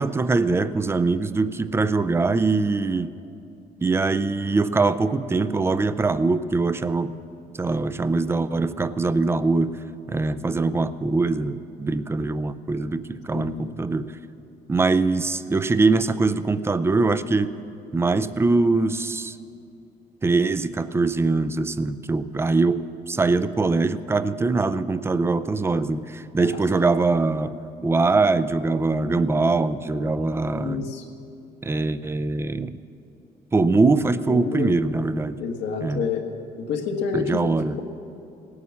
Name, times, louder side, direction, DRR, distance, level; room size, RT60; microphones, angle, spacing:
voice 1, 0.0-3.1 3.8-7.1 7.6-9.8 10.1-14.1 14.7-17.5 17.9-19.4 20.2-27.5 27.8-30.8 31.6-32.8 33.5-35.4 35.8-36.1 37.1-37.8, right 3 dB, 15° right, 14 dB, 0.4 m, -22 dB
voice 2, 13.3-13.7 26.4-26.6 30.4-31.0 34.3-34.7 35.4-36.2 36.6-37.8, left 5 dB, 85° left, 2 dB, 1.6 m, -29 dB
17.5 x 9.5 x 7.1 m, 2.7 s
cardioid pair, 110°, 17 cm